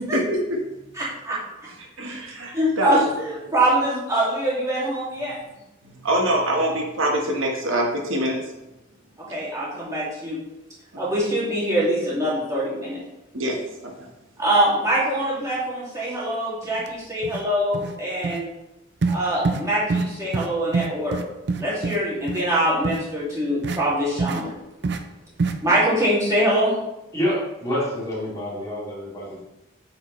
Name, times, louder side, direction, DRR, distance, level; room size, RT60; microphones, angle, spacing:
voice 1, 1.0-1.4 2.0-2.1 2.5-3.0 3.5-5.4 9.2-10.4 11.0-13.0 14.4-18.5 19.1-21.2 21.6-24.5 25.6-26.8, right 1 dB, 15° right, -7 dB, 2.3 m, -23 dB
voice 2, 2.0-3.5 5.8-8.4 10.9-11.0 13.3-13.6 14.0-14.1, right 1 dB, 80° right, 0 dB, 1.3 m, -24 dB
sound 1, 16.8-16.9 17.2-17.5 17.7-18.0 18.2-18.4 19.0-19.2 19.4-19.6 19.9-20.1 20.3-20.5 20.7-22.0 22.3-22.4 22.8-23.0 23.6-23.8 24.2-24.4 24.8-25.0 25.4-25.5, right 4 dB, 55° right, 0.5 m, -25 dB
voice 3, 27.1-29.4, equal, 15° left, -8 dB, 2.5 m, -27 dB
8.6 x 4.9 x 3.1 m, 0.92 s
head